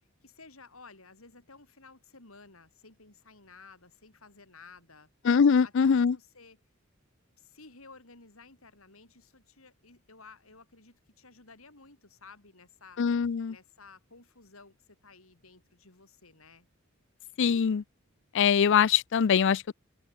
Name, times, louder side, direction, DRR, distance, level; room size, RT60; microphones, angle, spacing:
voice 1, 0.2-5.1 5.6-6.6 7.4-13.0 13.5-16.7, left 4 dB, 80° left, 5.1 m, -54 dB
voice 2, 5.2-6.2 13.0-13.5 17.4-17.8 18.3-19.7, left 6 dB, 60° left, 0.4 m, -23 dB
open air
head